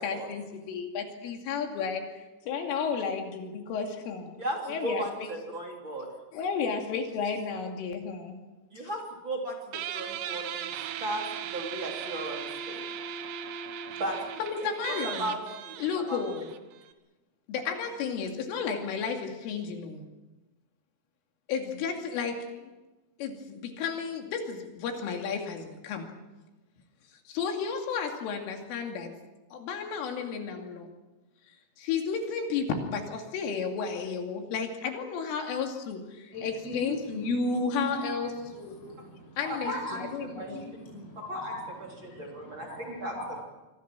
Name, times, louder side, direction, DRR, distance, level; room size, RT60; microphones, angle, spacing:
voice 1, 0.0-4.3 4.6-5.3 6.3-8.4 14.4-15.3 15.8-16.5 17.5-20.1 21.5-22.7 23.2-26.1 27.3-29.1 29.5-30.9 31.8-38.8 39.4-39.7 40.0-40.6, left 6 dB, 75° left, 3 dB, 5.1 m, -33 dB
voice 2, 4.4-6.1 8.7-10.7 11.0-11.2 11.5-12.9 14.0-14.2 14.9-15.8 16.1-16.2 39.5-40.0 40.4-40.5 41.3-41.5 42.0-43.1, right 1 dB, 30° right, 0 dB, 3.1 m, -36 dB
Guitar, 9.7-16.9, right 9 dB, 70° right, 3.3 m, -38 dB
voice 3, 36.3-43.4, equal, 30° left, -1 dB, 6.8 m, -38 dB
26.0 x 23.5 x 6.2 m, 1.1 s
omnidirectional pair, 5.9 m